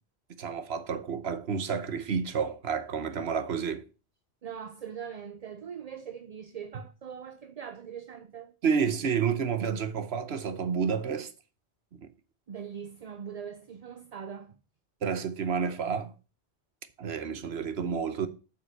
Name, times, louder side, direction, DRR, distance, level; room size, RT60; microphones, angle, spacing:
voice 1, 0.4-3.9 8.6-11.3 11.9-12.0 15.0-16.1 17.0-18.3, right 6 dB, 70° right, 1.2 m, -30 dB
voice 2, 4.4-8.5 12.5-14.5, right 7 dB, 45° right, 0.6 m, -41 dB
7.8 x 5.7 x 6.5 m
omnidirectional pair, 1.1 m